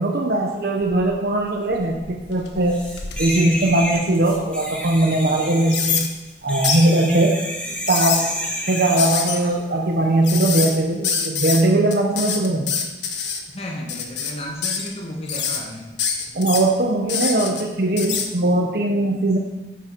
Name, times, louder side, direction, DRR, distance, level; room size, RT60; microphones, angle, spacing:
voice 1, 0.0-2.8 3.2-6.1 6.4-7.4 7.9-8.3 8.6-12.7 16.3-19.4, right 1 dB, 55° right, 1 dB, 0.9 m, -20 dB
sound 1, 0.8-1.3 1.7-4.4 4.9-5.0 5.7-6.1 6.6-6.9 7.7-8.2 9.0-9.4 10.2-10.8 11.0-11.6 11.9-13.4 13.9-14.3 14.6-14.9 15.3-15.6 16.0-16.6 17.1-17.6 18.0-18.3, left 6 dB, 70° left, 1.1 m, -25 dB
sound 2, 2.7-9.5 10.5-10.7, equal, 5° left, 1.7 m, -30 dB
voice 2, 13.5-15.9, left 1 dB, 30° left, -1 dB, 1.3 m, -33 dB
10.0 x 8.3 x 4.5 m, 1.1 s
head